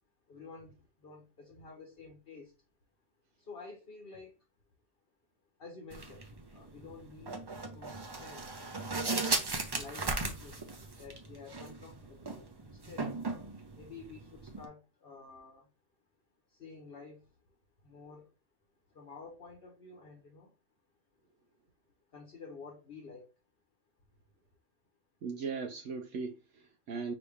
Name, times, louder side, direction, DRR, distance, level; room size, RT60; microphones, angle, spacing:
voice 1, 0.3-0.7 1.0-2.5 3.5-4.3 5.6-6.2 6.5-7.4 7.7-9.3 9.7-10.6 11.0-13.1 13.7-15.7 16.6-17.2 17.8-18.3 18.9-20.5 22.1-23.2, left 4 dB, 50° left, 1.1 m, -50 dB
sound 1, 5.9-14.7, right 3 dB, 30° right, 0.5 m, -38 dB
voice 2, 25.2-27.1, right 5 dB, 70° right, 0.9 m, -38 dB
5.0 x 2.8 x 3.4 m
omnidirectional pair, 1.3 m